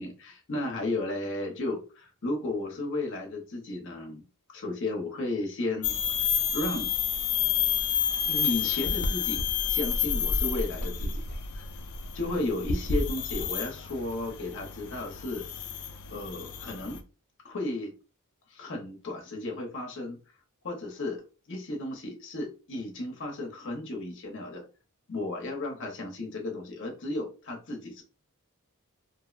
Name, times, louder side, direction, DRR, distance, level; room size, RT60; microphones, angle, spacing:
voice 1, 0.0-4.2 4.5-5.9 6.5-6.9 8.3-9.4 9.7-11.2 11.5-11.7 12.2-15.5 16.1-17.0 17.4-17.9 18.5-20.2 20.6-21.2 21.5-24.6 25.1-28.0, left 2 dB, 55° left, 0.7 m, -34 dB
sound 1, 5.8-17.0, left 7 dB, 90° left, 0.4 m, -30 dB
2.6 x 2.0 x 2.4 m
head